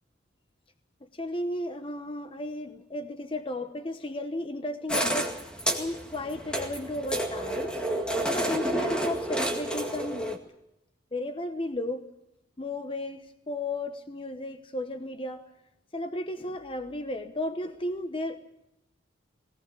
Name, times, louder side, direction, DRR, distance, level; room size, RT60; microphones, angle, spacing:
voice 1, 1.1-5.4 5.8-7.8 8.3-10.4 11.1-12.1 12.6-15.4 15.9-18.4, left 1 dB, 25° left, 8 dB, 0.9 m, -34 dB
sound 1, 4.9-10.4, right 1 dB, 5° left, 1.9 m, -30 dB
19.5 x 18.0 x 8.3 m, 0.86 s
head